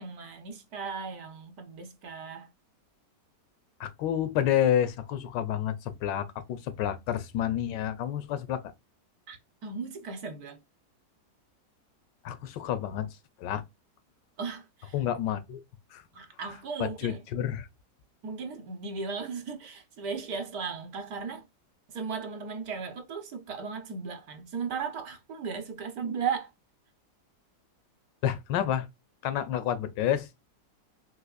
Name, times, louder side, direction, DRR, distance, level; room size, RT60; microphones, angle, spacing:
voice 1, 0.0-2.5 9.3-10.6 14.4-14.9 16.1-17.2 18.2-21.4 21.9-26.5, right 5 dB, 60° right, 1.2 m, -36 dB
voice 2, 3.8-8.6 12.2-13.1 13.4-13.6 14.9-15.6 15.9-16.0 16.8-17.7 28.2-28.9 29.2-30.3, left 10 dB, 85° left, 1.3 m, -29 dB
4.0 x 2.6 x 2.3 m
omnidirectional pair, 1.9 m